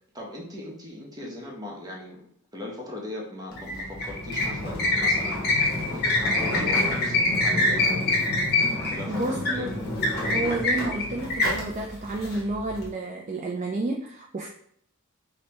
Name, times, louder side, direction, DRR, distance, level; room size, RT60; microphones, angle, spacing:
voice 1, 0.1-2.3 2.5-8.3 8.8-9.7, left 1 dB, 20° right, -2 dB, 0.8 m, -39 dB
sound 1, 3.5-12.8, left 2 dB, 45° left, 1.1 m, -25 dB
voice 2, 9.1-9.7 10.2-14.5, right 2 dB, 35° right, 0 dB, 0.3 m, -30 dB
5.2 x 2.2 x 2.9 m, 0.67 s
head